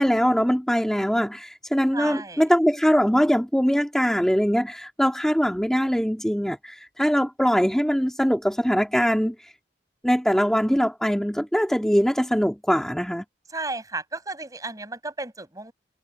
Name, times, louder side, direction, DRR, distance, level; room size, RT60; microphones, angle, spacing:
voice 1, 0.0-9.5 10.0-13.2, equal, 5° left, 2.2 m, -22 dB
voice 2, 1.9-2.4 13.5-15.7, right 3 dB, 20° right, 6.2 m, -33 dB
head